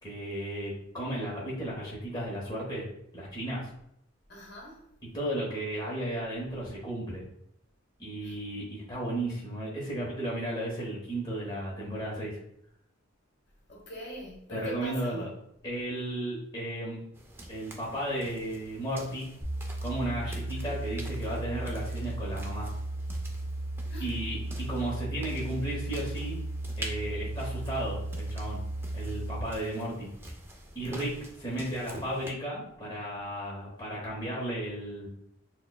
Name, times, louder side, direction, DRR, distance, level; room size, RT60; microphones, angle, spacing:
voice 1, 0.0-2.9 3.1-3.7 5.1-7.2 8.0-12.4 14.5-15.3 15.6-17.0 17.5-19.3 19.8-22.7 24.0-26.4 26.8-28.6 28.9-30.1 30.7-35.1, right 1 dB, 20° left, -6 dB, 0.8 m, -34 dB
voice 2, 4.3-4.8 8.2-8.4 13.7-15.3 20.6-20.7 23.9-24.1, equal, 50° left, -2 dB, 1.1 m, -42 dB
sound 1, 17.1-32.3, right 1 dB, 10° right, 0.3 m, -47 dB
sound 2, 19.4-29.4, right 1 dB, 30° right, 0.9 m, -35 dB
6.2 x 2.2 x 2.2 m, 0.72 s
head